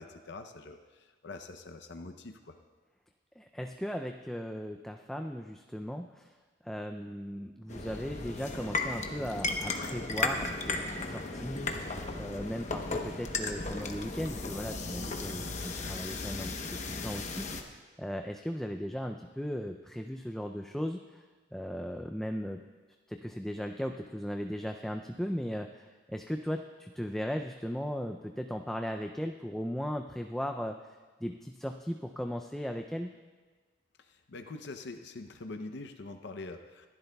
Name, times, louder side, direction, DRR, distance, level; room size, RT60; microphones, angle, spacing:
voice 1, 0.0-2.6 34.0-36.9, left 3 dB, 65° left, 6 dB, 0.6 m, -44 dB
voice 2, 3.4-6.3 6.6-21.2 21.5-22.6 23.1-30.8 31.2-33.2, equal, ahead, 4 dB, 0.3 m, -37 dB
sound 1, 7.7-17.6, left 3 dB, 40° left, 0.9 m, -35 dB
24.5 x 12.0 x 2.3 m, 1.4 s
head